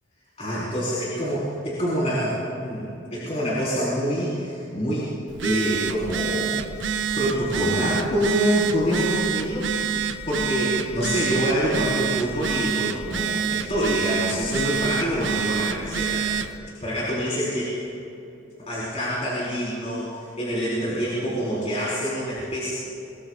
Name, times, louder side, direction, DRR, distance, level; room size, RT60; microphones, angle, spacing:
voice 1, 0.4-5.1 5.4-6.5 7.2-9.9 10.3-16.4 16.8-17.8 18.7-22.7, equal, 35° left, -9 dB, 4.6 m, -26 dB
Telephone, 5.3-16.6, right 6 dB, 80° right, 0.9 m, -27 dB
26.5 x 21.0 x 2.5 m, 2.8 s
head